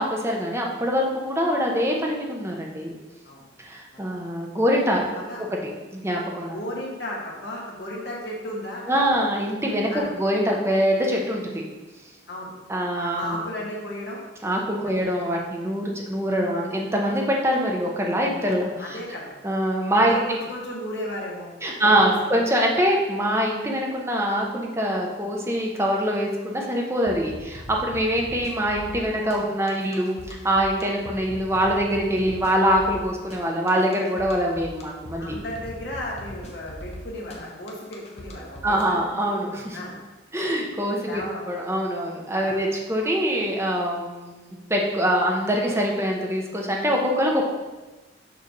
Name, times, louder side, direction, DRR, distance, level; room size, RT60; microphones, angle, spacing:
voice 1, 0.0-2.9 3.6-5.0 5.9-6.6 8.9-11.6 12.7-13.4 14.4-19.0 19.4-20.2 21.6-35.4 38.6-39.8 40.3-47.4, equal, 15° right, -1 dB, 0.8 m, -24 dB
voice 2, 5.1-5.4 6.5-9.1 9.9-10.1 12.3-12.5 13.1-14.2 14.8-15.0 18.8-19.3 19.9-22.1 35.2-39.0 39.7-39.9 41.1-41.4 42.4-42.6, left 1 dB, 60° left, -3 dB, 1.3 m, -34 dB
sound 1, 27.1-38.8, left 1 dB, 35° left, 0.8 m, -40 dB
6.7 x 3.3 x 5.2 m, 1.2 s
head